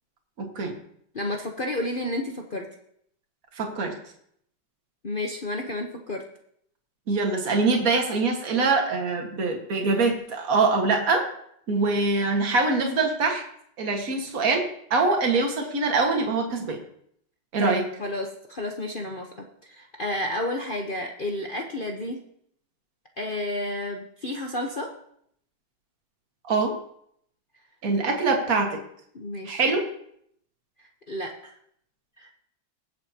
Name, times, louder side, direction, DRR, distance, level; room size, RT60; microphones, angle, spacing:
voice 1, 0.4-0.7 3.6-3.9 7.1-11.2 11.7-13.4 13.8-16.8 17.5-17.8 26.5-26.7 27.8-28.8 29.5-29.8, right 3 dB, 50° right, 2 dB, 2.0 m, -24 dB
voice 2, 1.1-2.7 5.0-6.2 17.6-19.3 19.6-22.2 23.2-24.9 29.1-29.6 31.1-31.5 32.2-32.3, left 1 dB, 40° left, 1 dB, 0.8 m, -31 dB
21.5 x 8.1 x 2.9 m, 0.69 s
omnidirectional pair, 2.1 m